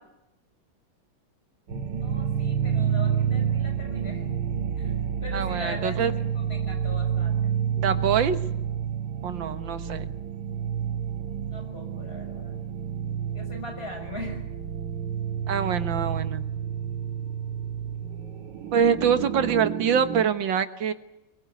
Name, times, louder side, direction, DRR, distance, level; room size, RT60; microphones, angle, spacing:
sound 1, 1.7-20.3, right 8 dB, 70° right, 1.9 m, -29 dB
voice 1, 2.0-4.2 4.8-4.9 5.2-7.5 11.5-12.6 13.3-14.4, left 2 dB, 30° left, 5 dB, 6.5 m, -40 dB
voice 2, 5.3-6.1 7.8-8.4 9.2-10.1 15.5-16.4 18.7-20.9, right 7 dB, 85° right, 10 dB, 2.0 m, -24 dB
23.5 x 21.5 x 8.2 m, 0.89 s
omnidirectional pair, 2.0 m